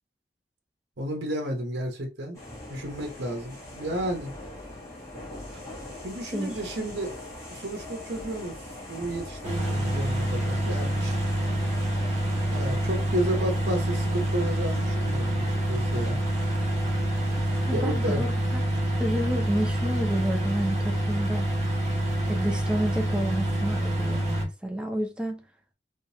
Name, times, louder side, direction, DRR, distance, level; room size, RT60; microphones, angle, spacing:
voice 1, 1.0-2.4 2.7-4.3 5.5-5.6 6.0-7.1 7.5-11.2 12.5-16.2 17.7-18.2, right 1 dB, 75° right, 1.1 m, -32 dB
sound 1, 2.3-17.8, left 1 dB, 20° left, 1.8 m, -42 dB
sound 2, 9.4-24.4, right 1 dB, 40° right, 1.5 m, -27 dB
voice 2, 17.7-18.3 18.5-18.6 19.0-21.5 22.3-25.4, right 1 dB, 5° right, 0.7 m, -30 dB
3.8 x 3.4 x 2.7 m
head